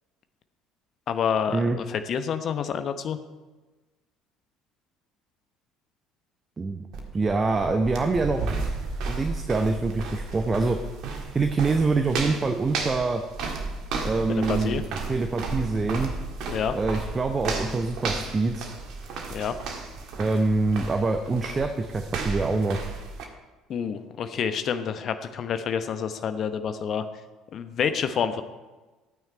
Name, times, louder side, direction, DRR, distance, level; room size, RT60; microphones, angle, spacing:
voice 1, 1.1-3.2 14.3-14.8 16.5-16.7 19.3-19.5 23.7-27.0 27.5-28.4, left 7 dB, 45° left, 10 dB, 0.9 m, -28 dB
voice 2, 6.6-6.9 7.1-8.5 9.1-10.8 11.3-13.2 14.0-14.8 15.1-16.1 16.7-18.7 20.2-22.8, right 3 dB, 25° right, 6 dB, 0.8 m, -25 dB
sound 1, 6.9-23.3, right 4 dB, 55° right, 1.7 m, -33 dB
13.0 x 9.3 x 4.5 m, 1.2 s
figure-of-eight pair, 55°, 0 cm